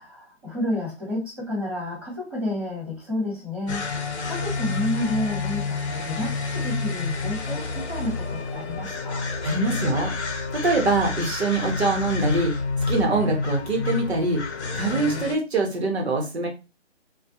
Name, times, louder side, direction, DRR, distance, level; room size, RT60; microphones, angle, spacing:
voice 1, 0.0-9.3, left 1 dB, 20° right, -10 dB, 1.0 m, -30 dB
sound 1, 3.7-15.3, left 3 dB, 65° left, 0.6 m, -29 dB
voice 2, 9.4-10.1 10.5-12.5 12.9-14.4 14.7-16.5, right 2 dB, 60° right, 2 dB, 0.9 m, -24 dB
2.3 x 2.1 x 2.7 m, 0.29 s
hypercardioid pair, 175°, 36 cm